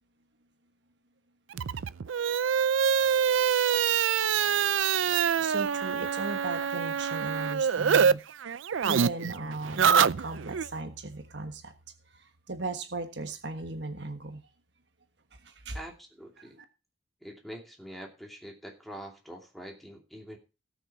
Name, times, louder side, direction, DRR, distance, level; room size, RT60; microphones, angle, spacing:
sound 1, 1.5-8.1 8.4-10.7, right 7 dB, 80° right, 0.5 m, -25 dB
voice 1, 5.4-8.2 8.8-11.7 12.1-14.4 15.4-15.8 16.6-16.7, right 2 dB, 60° right, 7 dB, 1.3 m, -37 dB
voice 2, 15.7-16.6 17.2-20.4, equal, ahead, 2 dB, 2.6 m, -44 dB
18.5 x 6.4 x 4.2 m, 0.30 s
head